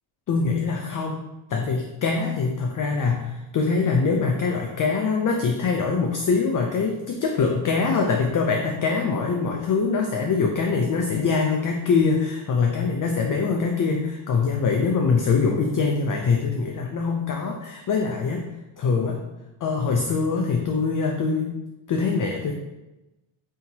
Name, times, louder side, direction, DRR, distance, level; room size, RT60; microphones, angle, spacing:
voice 1, 0.3-1.2 1.5-18.5 18.8-19.2 19.6-21.6 21.9-22.5, left 4 dB, 40° left, 2 dB, 0.4 m, -23 dB
5.5 x 2.8 x 2.7 m, 1.0 s
cardioid pair, 125°, 50 cm